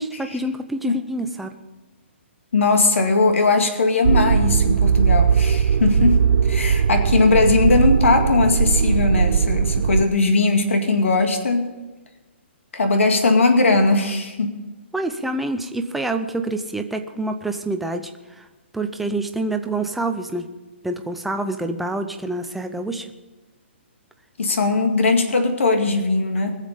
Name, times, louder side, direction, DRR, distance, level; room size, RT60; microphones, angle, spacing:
voice 1, 0.0-1.5 14.9-18.1 18.4-18.5 18.7-20.5 20.8-23.1, right 2 dB, ahead, 6 dB, 0.6 m, -27 dB
voice 2, 2.5-11.7 12.7-14.5 24.4-26.5, left 3 dB, 85° left, 5 dB, 2.2 m, -19 dB
sound 1, 4.0-10.0, right 6 dB, 65° right, 0.7 m, -19 dB
21.5 x 7.5 x 5.2 m, 1.2 s
hypercardioid pair, 165°, 7 cm